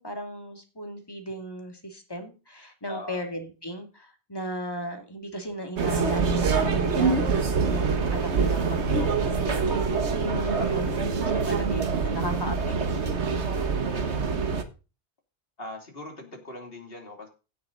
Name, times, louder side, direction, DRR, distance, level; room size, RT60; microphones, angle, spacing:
voice 1, 0.0-13.7, equal, 20° left, 4 dB, 2.5 m, -36 dB
voice 2, 2.9-3.2 10.6-10.8 14.0-14.6 15.6-17.3, left 2 dB, 55° left, 3 dB, 3.1 m, -41 dB
sound 1, 5.8-14.6, right 5 dB, 75° right, 1.6 m, -25 dB
16.0 x 6.8 x 4.0 m, 0.32 s
omnidirectional pair, 1.2 m